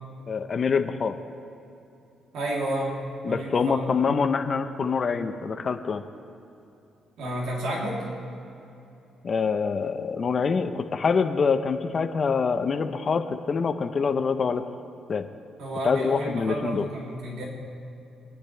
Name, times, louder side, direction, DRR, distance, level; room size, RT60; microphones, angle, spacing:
voice 1, 0.3-1.2 3.2-6.0 9.2-14.6 15.1-15.3 15.8-16.8, left 5 dB, 45° left, 7 dB, 0.8 m, -25 dB
voice 2, 2.3-3.9 7.2-8.0 15.6-17.4, right 1 dB, 80° right, -3 dB, 3.0 m, -31 dB
25.5 x 10.0 x 3.4 m, 2.8 s
cardioid pair, 90°, 0 cm